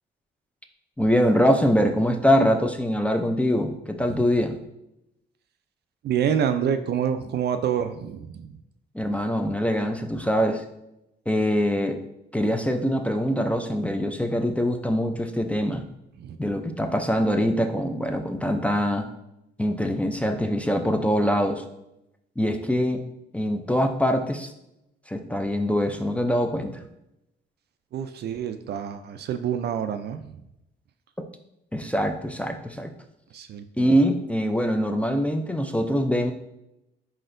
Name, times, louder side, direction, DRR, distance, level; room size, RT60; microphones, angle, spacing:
voice 1, 1.0-4.6 8.9-10.6 11.3-12.0 12.3-15.8 16.4-19.1 19.6-21.6 22.4-23.0 23.3-24.5 25.1-26.8 31.2-31.3 31.7-32.9 33.8-36.3, equal, 5° left, 5 dB, 0.4 m, -23 dB
voice 2, 6.0-8.6 16.2-16.4 27.9-30.4 33.3-34.0, right 8 dB, 55° right, 9 dB, 0.4 m, -27 dB
4.4 x 4.1 x 2.5 m, 0.85 s
cardioid pair, 90°, 20 cm